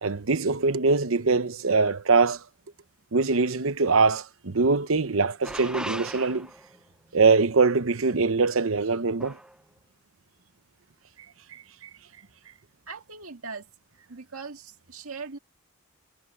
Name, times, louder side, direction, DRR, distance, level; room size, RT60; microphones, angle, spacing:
voice 1, 0.0-2.4 3.1-6.5 7.1-9.4, right 4 dB, 70° right, 0.9 m, -23 dB
sound 1, 5.4-6.8 9.2-9.5, right 1 dB, 5° right, 0.8 m, -37 dB
voice 2, 12.9-13.7 14.1-15.4, right 4 dB, 90° right, 2.0 m, -40 dB
head